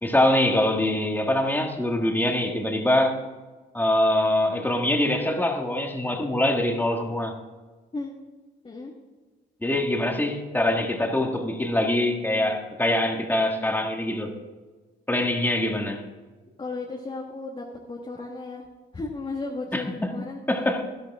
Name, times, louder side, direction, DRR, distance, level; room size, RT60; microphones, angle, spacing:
voice 1, 0.0-3.2 3.7-7.3 9.6-14.3 15.1-16.0 19.7-20.1 20.5-20.8, left 1 dB, 10° left, 3 dB, 1.7 m, -24 dB
voice 2, 16.6-18.7 18.9-20.4, left 3 dB, 25° left, -1 dB, 1.5 m, -34 dB
12.0 x 11.5 x 3.6 m, 1.3 s
cardioid pair, 90°, 20 cm